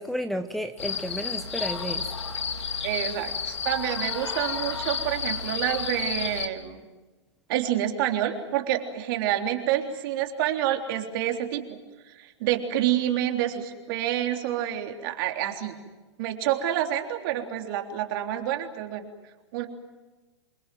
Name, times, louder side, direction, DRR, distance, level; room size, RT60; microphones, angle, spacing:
voice 1, 0.0-2.1, equal, ahead, 5 dB, 1.1 m, -32 dB
sound 1, 0.8-6.5, left 6 dB, 75° left, 2.6 m, -31 dB
voice 2, 2.8-6.9 7.5-11.8 12.2-15.8 16.2-19.1 19.5-19.6, right 11 dB, 50° right, 3 dB, 3.6 m, -28 dB
28.0 x 23.0 x 7.7 m, 1.2 s
hypercardioid pair, 115°, 15 cm